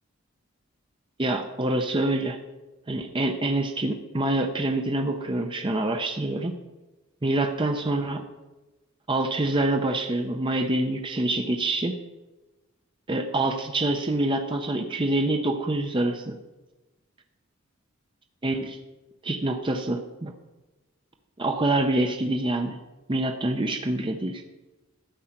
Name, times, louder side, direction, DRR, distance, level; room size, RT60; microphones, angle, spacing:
voice 1, 1.2-2.4 2.9-6.5 7.2-8.2 9.1-11.9 13.1-16.4 18.4-18.8 19.2-20.3 21.4-22.8 23.1-24.4, right 2 dB, 25° right, 4 dB, 0.7 m, -26 dB
12.5 x 7.7 x 5.8 m, 1.1 s
head